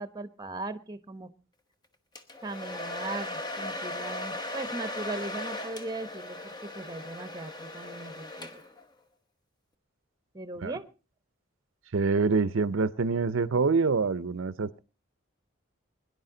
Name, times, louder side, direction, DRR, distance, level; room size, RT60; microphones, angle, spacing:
voice 1, 0.0-1.3 2.4-8.6 10.3-10.9, right 2 dB, 20° right, 12 dB, 1.0 m, -38 dB
Domestic sounds home sounds, 2.2-8.9, left 1 dB, 20° left, 1.0 m, -38 dB
voice 2, 11.9-14.8, right 4 dB, 70° right, 17 dB, 0.6 m, -26 dB
22.0 x 10.5 x 3.8 m, 0.34 s
head